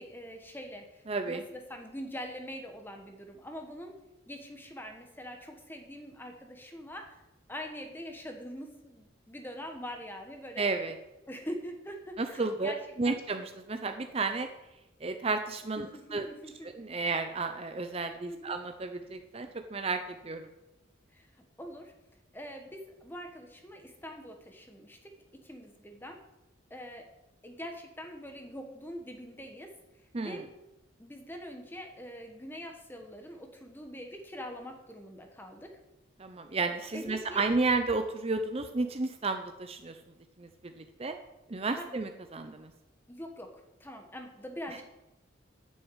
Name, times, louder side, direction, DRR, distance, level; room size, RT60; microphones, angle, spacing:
voice 1, 0.0-4.0 4.3-7.2 7.5-10.7 11.3-13.2 15.8-16.7 18.3-18.5 21.1-21.9 22.3-26.2 26.7-27.1 27.4-29.7 30.2-30.5 31.0-35.8 36.9-37.4 41.6-42.0 43.1-44.8, equal, 10° left, 4 dB, 1.3 m, -44 dB
voice 2, 1.1-1.4 10.6-11.0 12.2-12.7 13.0-14.5 15.0-16.3 16.6-20.5 30.1-30.4 36.2-40.0 40.4-40.5 40.8-41.2 41.5-42.7, right 3 dB, 30° right, 7 dB, 0.6 m, -32 dB
9.4 x 6.9 x 8.1 m, 0.96 s
head